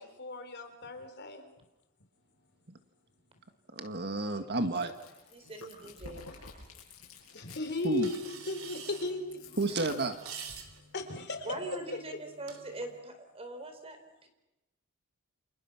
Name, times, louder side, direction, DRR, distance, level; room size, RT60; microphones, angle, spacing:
voice 1, 0.0-1.5 7.3-9.6 10.9-11.5, left 2 dB, 55° left, 7 dB, 3.7 m, -37 dB
voice 2, 3.7-4.9 7.8-8.6 9.6-10.2, right 2 dB, 50° right, 7 dB, 1.8 m, -31 dB
Chewing mastication, 4.6-10.7, left 4 dB, 70° left, 8.0 m, -51 dB
voice 3, 5.3-6.3 9.8-9.9 11.5-14.3, right 2 dB, 30° right, 7 dB, 4.5 m, -42 dB
sound 1, 8.0-13.0, right 6 dB, 70° right, 3.4 m, -48 dB
29.5 x 27.5 x 6.0 m, 0.98 s
head